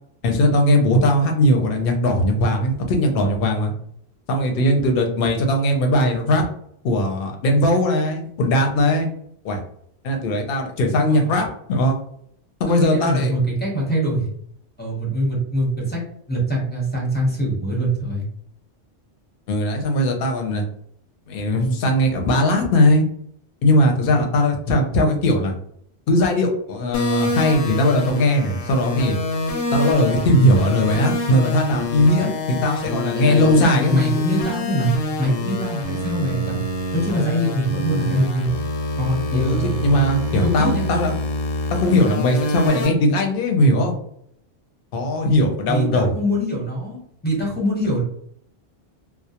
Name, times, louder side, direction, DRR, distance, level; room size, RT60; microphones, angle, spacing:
voice 1, 0.2-3.7 4.3-6.4 6.8-9.1 9.4-9.6 10.0-12.0 12.6-13.3 19.5-20.7 21.3-23.0 23.6-25.5 26.1-29.2 29.7-34.0 39.3-41.1 41.7-44.0 44.9-46.1, left 1 dB, 60° left, 3 dB, 0.7 m, -19 dB
voice 2, 12.7-14.3 14.8-16.0 16.3-18.2 32.2-32.3 33.2-36.6 36.9-38.5 39.0-40.0 40.4-40.9 45.7-47.0 47.2-48.0, right 1 dB, 10° left, -4 dB, 0.7 m, -23 dB
sound 1, 26.9-42.9, left 2 dB, 90° left, 0.9 m, -26 dB
2.2 x 2.0 x 2.8 m, 0.67 s
omnidirectional pair, 1.1 m